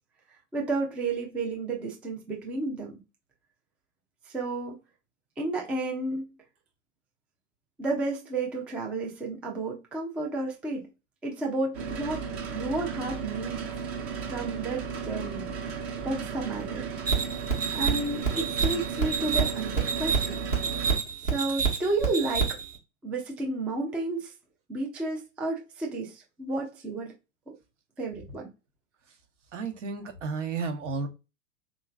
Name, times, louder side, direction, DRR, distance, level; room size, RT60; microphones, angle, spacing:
voice 1, 0.5-3.0 4.3-4.8 5.4-6.3 7.8-10.9 11.2-12.2 12.5-13.6 14.3-15.5 16.0-16.8 17.7-20.5 21.2-22.5 23.0-24.3 24.7-27.1 28.0-28.5, right 2 dB, 5° right, 0.3 m, -32 dB
sound 1, 11.7-21.0, right 6 dB, 40° right, 0.9 m, -35 dB
sound 2, 17.1-22.8, right 6 dB, 85° right, 1.5 m, -28 dB
voice 2, 29.5-31.1, right 4 dB, 70° right, 1.1 m, -33 dB
3.7 x 3.1 x 2.3 m
figure-of-eight pair, 100°, 38 cm